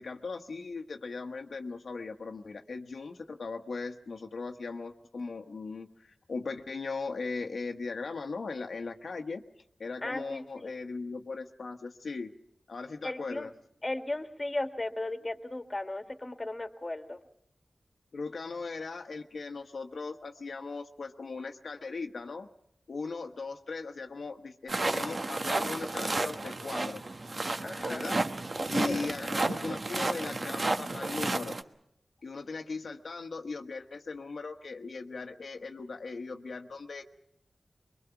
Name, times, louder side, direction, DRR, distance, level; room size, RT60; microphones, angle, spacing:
voice 1, 0.0-9.4 9.8-12.3 12.7-13.5 18.1-22.5 22.9-27.0 27.9-28.2 28.7-31.6 32.2-37.0, left 4 dB, 75° left, 4 dB, 1.1 m, -38 dB
voice 2, 10.0-10.7 13.0-13.5 13.8-17.2 27.6-28.0 28.8-29.0, left 2 dB, 30° left, 7 dB, 1.7 m, -36 dB
sound 1, 24.7-31.6, right 2 dB, 50° right, 1.2 m, -32 dB
23.5 x 22.5 x 5.9 m, 0.77 s
wide cardioid pair, 65°, 0 cm